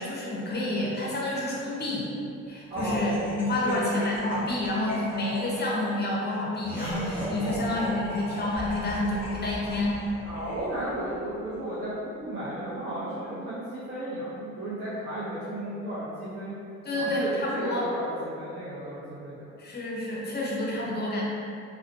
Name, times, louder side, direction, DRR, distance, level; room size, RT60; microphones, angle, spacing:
voice 1, 0.0-2.1 2.5-10.0 16.8-17.9 19.6-21.2, left 1 dB, 35° left, -4 dB, 0.6 m, -29 dB
voice 2, 2.7-3.1 3.6-4.0 10.2-16.6 16.9-19.5, right 1 dB, 40° right, -11 dB, 0.6 m, -34 dB
Laughter, 2.8-11.1, equal, 5° right, 1.0 m, -38 dB
sound 1, 8.4-12.3, equal, 70° right, 0.8 m, -43 dB
2.5 x 2.1 x 2.5 m, 2.6 s
cardioid pair, 90°, 30 cm